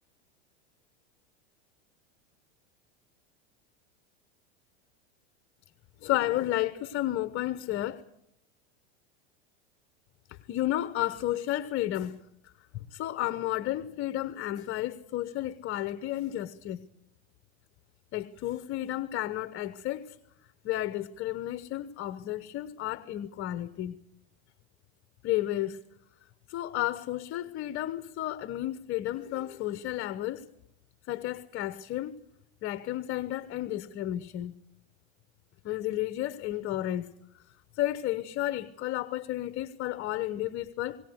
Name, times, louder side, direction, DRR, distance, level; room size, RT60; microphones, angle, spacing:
voice 1, 6.0-8.0 10.3-12.2 12.4-12.5 12.9-16.8 18.1-20.2 20.6-24.0 25.2-25.8 26.5-30.5 31.1-32.1 32.6-34.5 35.6-37.1 37.7-41.0, left 14 dB, 40° left, 1.1 m, -32 dB
21.5 x 18.0 x 8.0 m
supercardioid pair, 120°, 33 cm